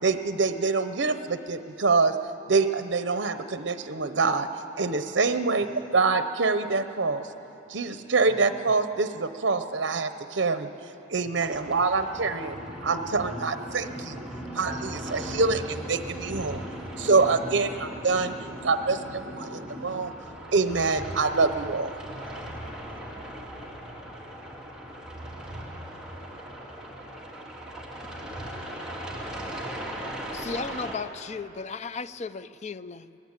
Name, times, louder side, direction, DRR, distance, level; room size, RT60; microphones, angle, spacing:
voice 1, 0.0-2.2 2.5-4.5 4.8-5.7 5.9-7.2 7.7-10.7 11.1-12.5 12.8-13.9 14.6-16.6 17.0-17.7 18.0-18.3 18.6-19.0 19.8-20.1 20.5-21.9, right 4 dB, 70° right, 10 dB, 0.8 m, -25 dB
sound 1, 11.4-31.0, right 1 dB, 5° right, 2.8 m, -40 dB
voice 2, 12.0-20.5 22.0-23.3, equal, 25° right, 0 dB, 2.1 m, -41 dB
voice 3, 30.3-33.2, left 4 dB, 40° left, 15 dB, 0.5 m, -35 dB
23.0 x 18.5 x 8.9 m, 3.0 s
head